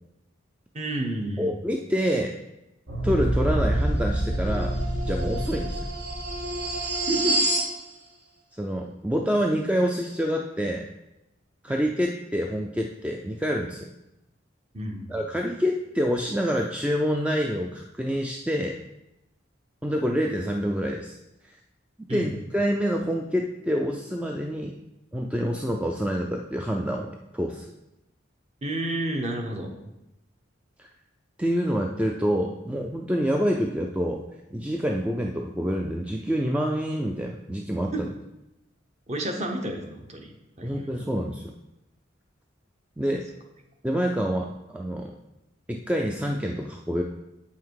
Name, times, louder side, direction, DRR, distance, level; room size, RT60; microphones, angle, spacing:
voice 1, 0.7-1.5 7.0-7.4 14.7-15.2 22.1-22.3 28.6-29.7 37.9-38.0 39.1-40.3 40.6-40.9, right 1 dB, 35° right, 3 dB, 1.0 m, -30 dB
voice 2, 1.4-2.3 3.0-4.8 5.0-5.9 8.5-10.9 11.6-13.9 15.1-18.8 19.8-21.2 21.4-21.6 22.1-24.8 25.1-27.7 30.8-30.9 31.4-34.2 34.5-38.1 40.6-41.5 43.0-43.3 43.8-45.2 45.7-47.0, equal, 5° right, 1 dB, 0.4 m, -27 dB
sound 1, 2.9-7.7, right 1 dB, 65° right, 1.5 m, -26 dB
7.8 x 5.7 x 4.7 m, 0.91 s
head